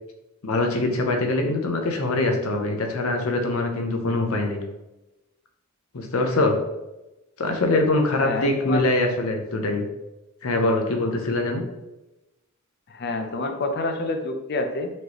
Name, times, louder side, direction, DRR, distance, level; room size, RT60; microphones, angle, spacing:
voice 1, 0.4-4.6 5.9-6.6 7.4-9.9 10.4-11.6, left 2 dB, 80° left, 3 dB, 0.7 m, -23 dB
voice 2, 8.2-8.9 12.9-14.9, left 2 dB, 50° left, 6 dB, 0.5 m, -28 dB
4.3 x 3.2 x 2.9 m, 0.98 s
head